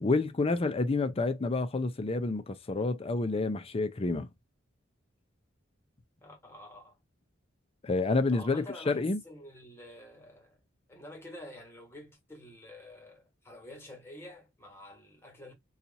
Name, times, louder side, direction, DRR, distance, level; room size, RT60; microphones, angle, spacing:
voice 1, 0.0-4.3 7.8-9.2, left 3 dB, 30° left, 0.5 m, -29 dB
voice 2, 6.2-7.0 8.3-10.6 10.9-15.5, left 1 dB, 10° left, 1.2 m, -48 dB
2.8 x 2.4 x 3.9 m
head